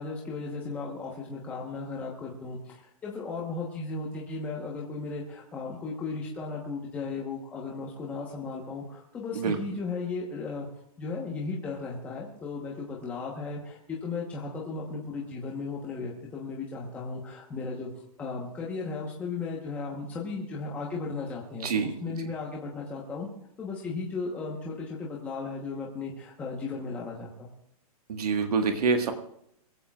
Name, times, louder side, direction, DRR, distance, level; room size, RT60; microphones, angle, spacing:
voice 1, 0.0-10.7 11.0-17.9 18.2-23.3 23.6-27.5, left 4 dB, 10° left, -3 dB, 1.1 m, -36 dB
voice 2, 28.1-29.1, right 5 dB, 75° right, 5 dB, 1.6 m, -26 dB
23.0 x 15.0 x 2.4 m, 0.73 s
hypercardioid pair, 175°, 20 cm